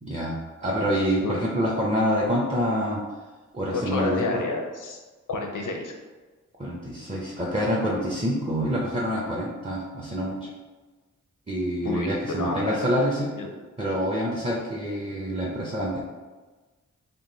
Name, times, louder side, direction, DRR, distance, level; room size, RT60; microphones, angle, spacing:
voice 1, 0.0-3.0 3.5-4.4 6.6-10.5 11.5-13.3 13.8-16.0, equal, 20° right, -3 dB, 0.7 m, -26 dB
voice 2, 3.7-5.0 5.3-6.0 11.8-13.0 13.4-13.5, left 3 dB, 85° left, 3 dB, 0.6 m, -30 dB
3.6 x 2.5 x 3.9 m, 1.3 s
wide cardioid pair, 60°, 31 cm